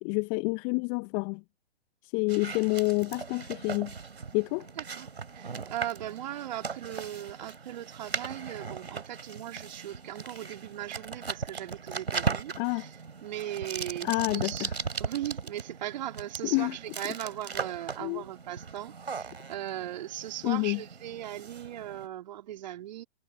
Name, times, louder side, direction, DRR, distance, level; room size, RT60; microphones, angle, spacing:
voice 1, 0.0-1.4 2.1-3.9 4.3-4.7 12.6-12.8 14.0-14.7 16.5-16.7 18.0-18.2 20.4-20.8, left 39 dB, 15° left, 0.6 m, -28 dB
sound 1, 2.3-22.1, right 5 dB, 70° right, 3.5 m, -38 dB
voice 2, 4.8-23.0, right 12 dB, 40° right, 3.5 m, -38 dB
figure-of-eight pair, 125°, 32 cm